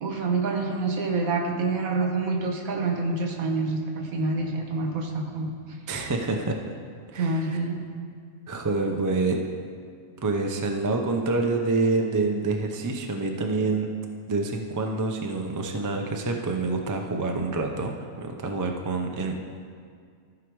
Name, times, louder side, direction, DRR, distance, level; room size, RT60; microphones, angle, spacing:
voice 1, 0.0-5.5 7.1-7.8, right 3 dB, 75° right, 3 dB, 1.5 m, -27 dB
voice 2, 5.9-6.6 7.1-7.6 8.5-9.4 10.2-13.9 14.3-19.3, right 3 dB, 30° right, 3 dB, 0.3 m, -27 dB
14.5 x 4.9 x 4.7 m, 2.1 s
omnidirectional pair, 1.5 m